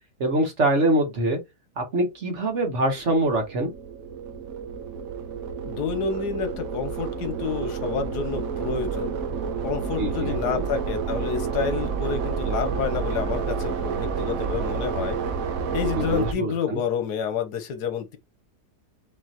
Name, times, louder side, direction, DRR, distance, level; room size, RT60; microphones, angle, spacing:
voice 1, 0.2-1.4 1.8-3.7 10.0-10.6 16.0-16.8, right 1 dB, 50° right, 1.4 m, -24 dB
sound 1, 2.6-16.3, right 6 dB, 65° right, 1.1 m, -30 dB
voice 2, 5.6-9.1 9.6-15.2 15.7-18.2, left 7 dB, 85° left, 1.5 m, -29 dB
5.4 x 3.1 x 2.9 m
omnidirectional pair, 1.7 m